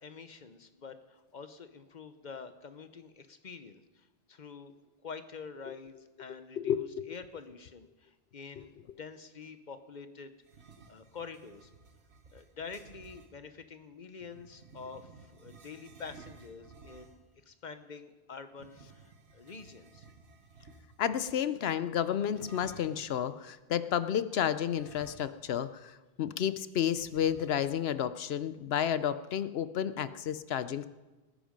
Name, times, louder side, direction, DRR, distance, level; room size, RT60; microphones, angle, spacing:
voice 1, 0.0-4.7 5.0-10.3 10.9-11.7 12.3-20.1, left 5 dB, 45° left, 10 dB, 1.1 m, -47 dB
voice 2, 6.3-7.1 21.0-30.8, left 9 dB, 75° left, 13 dB, 0.9 m, -31 dB
sound 1, 10.4-13.3 14.2-17.3 18.5-21.2 22.2-23.1 24.7-25.6 25.9-26.0 27.0-27.9, right 4 dB, 90° right, 1.5 m, -55 dB
19.5 x 10.0 x 5.2 m, 1.2 s
omnidirectional pair, 1.1 m